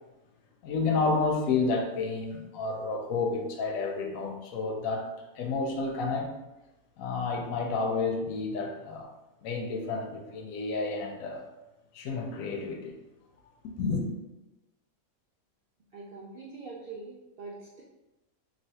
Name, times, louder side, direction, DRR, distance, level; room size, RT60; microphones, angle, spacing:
voice 1, 0.6-5.1 5.4-6.3 7.0-9.1 9.4-11.4 11.9-13.0 13.8-14.1, left 4 dB, 75° left, 2 dB, 1.0 m, -30 dB
voice 2, 15.9-17.8, right 3 dB, 65° right, -5 dB, 0.6 m, -43 dB
3.2 x 2.6 x 2.7 m, 1.0 s
omnidirectional pair, 1.4 m